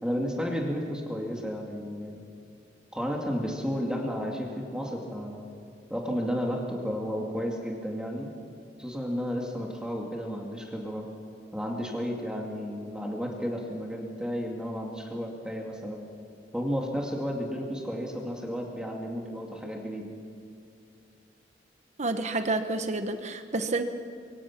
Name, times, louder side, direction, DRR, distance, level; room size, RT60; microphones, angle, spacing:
voice 1, 0.0-2.2 2.9-5.5 5.9-8.3 8.8-11.1 11.5-16.0 16.5-20.1, equal, 5° right, 0 dB, 2.4 m, -32 dB
voice 2, 22.0-23.8, right 2 dB, 40° right, 8 dB, 1.2 m, -29 dB
24.5 x 24.0 x 6.0 m, 2.5 s
head